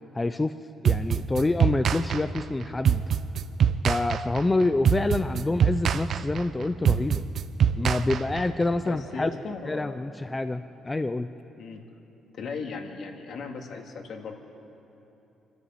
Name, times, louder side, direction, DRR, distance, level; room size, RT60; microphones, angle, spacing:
voice 1, 0.1-0.5 0.8-3.0 3.8-7.2 7.8-9.3 9.7-11.3, left 2 dB, 20° left, 10 dB, 0.6 m, -27 dB
sound 1, 0.8-8.7, right 8 dB, 60° right, 0.7 m, -24 dB
voice 2, 8.8-10.0 11.6-11.8 12.3-14.4, left 5 dB, 65° left, 3 dB, 2.4 m, -37 dB
24.5 x 12.5 x 9.3 m, 3.0 s
cardioid pair, 90°, 0 cm